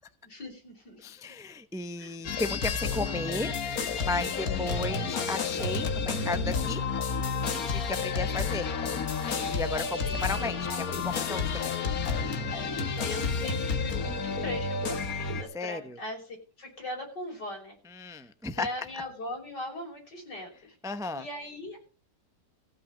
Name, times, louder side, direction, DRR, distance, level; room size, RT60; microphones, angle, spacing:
voice 1, 0.2-1.3 2.0-2.2 9.9-10.3 12.5-17.8 18.0-20.8 21.1-21.8, left 1 dB, 80° left, 1 dB, 6.3 m, -40 dB
voice 2, 1.0-3.5 4.0-6.8 7.7-8.7 9.4-11.7 15.5-16.0 18.0-18.7 20.8-21.2, left 3 dB, 5° right, 10 dB, 0.3 m, -34 dB
sound 1, 2.2-15.4, left 5 dB, 60° left, 1.7 m, -30 dB
15.5 x 5.8 x 8.4 m, 0.35 s
omnidirectional pair, 1.8 m